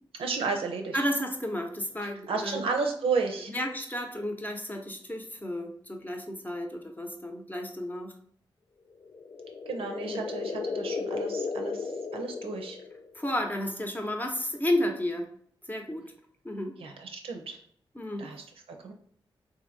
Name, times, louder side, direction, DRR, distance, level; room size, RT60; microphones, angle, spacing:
voice 1, 0.2-1.0 2.3-3.5 9.7-12.8 16.8-17.6 18.2-18.4 18.8-18.9, right 4 dB, 85° right, 4 dB, 0.6 m, -32 dB
voice 2, 0.9-2.7 3.5-8.2 10.1-10.3 13.1-15.3 15.7-16.1 16.4-16.8 17.9-18.3, left 1 dB, 20° left, 3 dB, 0.7 m, -32 dB
sound 1, 9.0-13.2, left 4 dB, 50° left, 0.4 m, -35 dB
2.8 x 2.7 x 3.9 m, 0.62 s
cardioid pair, 60°, 9 cm